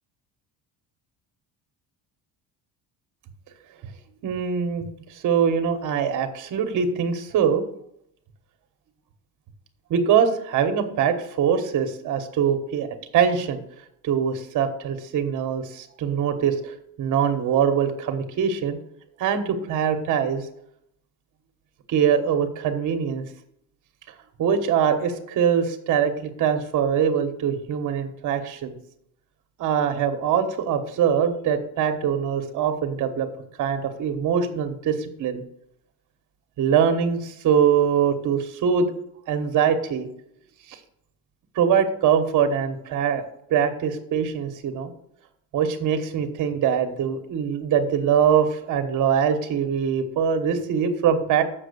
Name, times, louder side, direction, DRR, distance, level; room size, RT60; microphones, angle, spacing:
voice 1, 4.2-7.6 9.9-12.9 13.1-13.6 14.0-18.8 19.2-20.5 21.9-23.2 24.4-28.8 29.6-33.3 33.6-35.4 36.6-38.9 39.3-40.1 40.7-40.8 41.5-43.2 43.5-44.9 45.5-51.4, right 7 dB, 50° right, 7 dB, 1.2 m, -23 dB
7.3 x 6.3 x 6.7 m, 0.76 s
cardioid pair, 155°, 38 cm